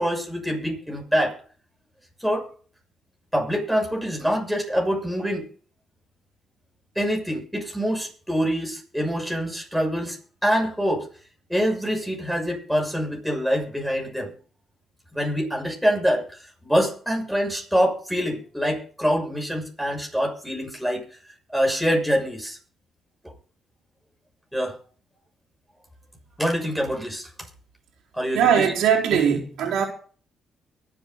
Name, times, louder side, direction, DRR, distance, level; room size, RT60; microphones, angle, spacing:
voice 1, 0.0-1.4 2.2-2.5 3.3-5.5 6.9-10.2 10.4-11.1 11.5-14.3 15.1-21.0 21.5-22.6 24.5-24.8 26.4-27.3 28.1-28.6, equal, ahead, 6.7 m, -25 dB
voice 2, 28.3-29.8, right 8 dB, 85° right, 4.4 m, -20 dB
24.0 x 8.5 x 4.0 m
cardioid pair, 90°, 0 cm